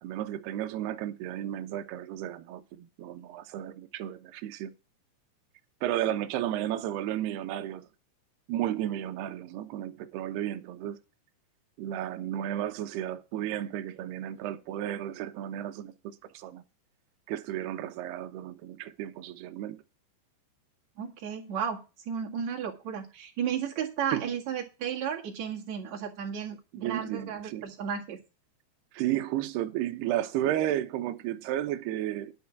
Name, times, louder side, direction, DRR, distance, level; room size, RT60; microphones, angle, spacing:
voice 1, 0.0-4.7 5.8-7.9 8.5-11.0 11.8-15.9 16.3-16.6 17.3-19.8 24.1-24.3 26.8-27.7 28.9-32.3, right 12 dB, 75° right, 2.8 m, -33 dB
voice 2, 21.0-28.2, right 8 dB, 50° right, 2.5 m, -34 dB
11.0 x 5.5 x 7.2 m
omnidirectional pair, 5.3 m